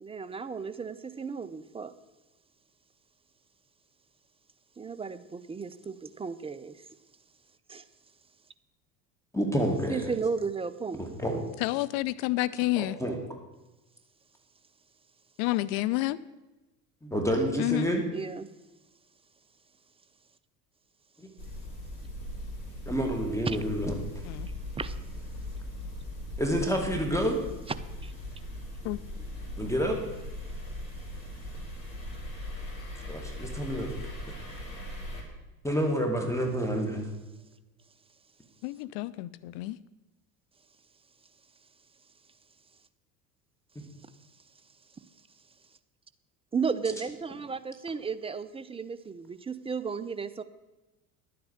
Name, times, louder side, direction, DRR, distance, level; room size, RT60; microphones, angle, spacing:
voice 1, 0.0-1.9 4.8-6.9 7.7-7.8 9.9-11.0 18.1-18.5 23.5-23.6 24.8-25.0 28.0-28.1 46.5-50.4, right 5 dB, 10° right, 12 dB, 0.6 m, -34 dB
voice 2, 9.3-10.1 11.0-11.4 12.8-13.2 17.0-18.0 21.2-21.3 22.9-23.9 26.4-27.4 28.8-28.9 29.6-30.0 33.1-33.9 35.6-37.1 43.8-43.9, equal, 5° left, 2 dB, 2.5 m, -28 dB
voice 3, 11.6-12.9 15.4-16.2 17.6-17.9 24.3-24.5 28.8-29.0 38.6-39.8, left 18 dB, 50° left, 17 dB, 0.6 m, -29 dB
sound 1, 21.4-35.2, left 1 dB, 90° left, 2.7 m, -39 dB
11.0 x 9.4 x 6.6 m, 1.1 s
figure-of-eight pair, 70°, 48 cm